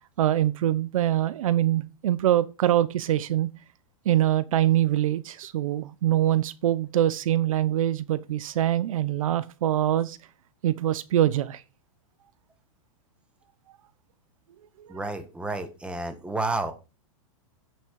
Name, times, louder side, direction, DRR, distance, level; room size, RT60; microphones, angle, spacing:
voice 1, 0.2-3.5 4.1-10.2 10.6-11.6 14.9-15.0, right 12 dB, 75° right, 0.8 m, -24 dB
voice 2, 14.9-16.7, right 2 dB, 5° right, 1.5 m, -30 dB
9.6 x 6.4 x 4.8 m
hypercardioid pair, 130°, 18 cm